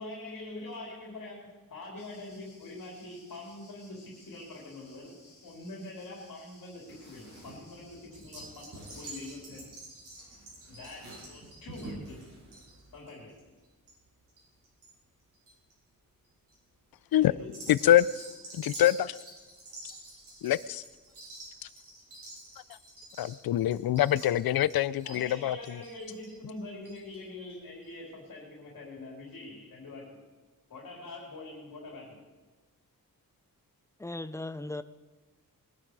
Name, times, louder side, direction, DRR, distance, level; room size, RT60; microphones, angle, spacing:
voice 1, 0.0-9.7 10.7-12.3 12.9-13.4 17.2-17.5 25.0-30.2 30.7-32.2, left 2 dB, 65° left, 3.8 m, -44 dB
sound 1, 2.0-8.1, left 2 dB, 30° left, 4.9 m, -59 dB
sound 2, 6.9-13.0, right 2 dB, 50° right, 6.6 m, -50 dB
sound 3, 8.1-14.9 15.2-15.7 16.2-16.6 17.4-27.2 27.5-27.6 27.8-27.9, right 2 dB, 65° right, 6.3 m, -48 dB
voice 2, 17.7-18.1 18.5-19.2 20.4-20.8 23.2-25.8, left 12 dB, 85° left, 0.5 m, -25 dB
voice 3, 34.0-34.8, left 2 dB, 10° left, 0.4 m, -37 dB
21.5 x 11.5 x 4.8 m
wide cardioid pair, 175°, 35 cm